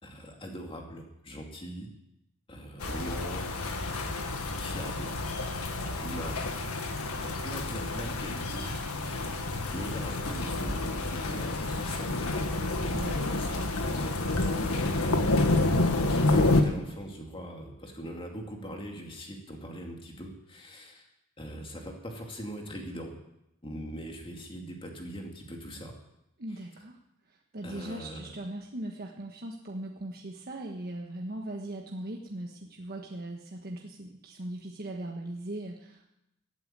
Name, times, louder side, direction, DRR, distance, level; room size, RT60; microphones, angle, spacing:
voice 1, 0.0-1.9 2.5-3.5 3.9-5.1 6.0-6.4 7.1-8.7 9.7-12.7 13.0-21.1 21.4-23.2 23.6-25.9 27.6-28.3, equal, 25° left, 1 dB, 2.4 m, -41 dB
sound 1, 2.8-16.6, left 2 dB, 85° left, 1.8 m, -29 dB
sound 2, 10.7-12.1 12.7-13.6 14.4-15.3 16.3-17.2, equal, 60° left, 2.9 m, -43 dB
voice 2, 12.9-13.2 13.6-13.7 26.4-27.0 27.5-36.0, right 1 dB, 45° right, 1 dB, 1.4 m, -39 dB
15.0 x 8.8 x 9.0 m, 0.85 s
head